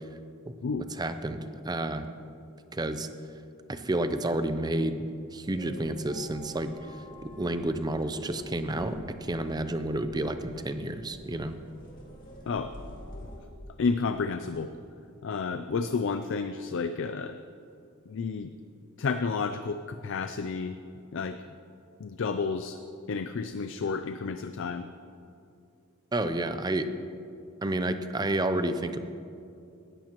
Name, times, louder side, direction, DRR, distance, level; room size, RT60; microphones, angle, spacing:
voice 1, 1.0-1.4 1.6-2.0 2.7-3.1 3.7-5.1 5.3-6.7 7.4-11.5 26.1-26.9 27.6-29.0, right 1 dB, 20° right, 10 dB, 0.5 m, -30 dB
sound 1, 5.5-13.4, equal, 40° left, 2.3 m, -47 dB
voice 2, 13.8-14.7 15.2-17.4 18.1-18.5 19.0-20.8 21.1-21.4 22.0-22.8 23.1-24.9, left 4 dB, 60° left, 9 dB, 0.4 m, -31 dB
18.0 x 13.0 x 3.0 m, 2.5 s
head